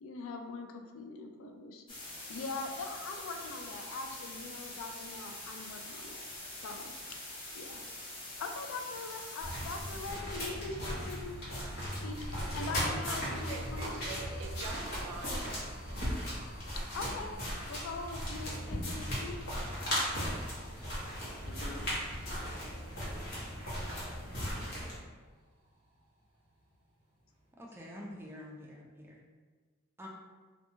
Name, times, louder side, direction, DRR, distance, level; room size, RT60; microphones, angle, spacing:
voice 1, 0.0-6.3 6.6-6.9 7.5-7.8 8.1-11.4 12.0-14.0 16.9-17.3 17.7-19.4 21.5-21.9, left 3 dB, 75° left, 5 dB, 0.3 m, -42 dB
sound 1, 1.9-10.1, left 1 dB, 25° left, 0.7 m, -45 dB
sound 2, 8.8-27.5, right 1 dB, 25° right, 0.9 m, -57 dB
sound 3, 9.4-25.0, equal, 55° left, 0.9 m, -37 dB
voice 2, 13.1-15.6 15.8-16.2, right 4 dB, 90° right, 3 dB, 0.4 m, -45 dB
voice 3, 27.6-29.2 30.0-30.1, left 1 dB, 10° right, -2 dB, 0.3 m, -47 dB
2.7 x 2.2 x 2.7 m, 1.4 s
head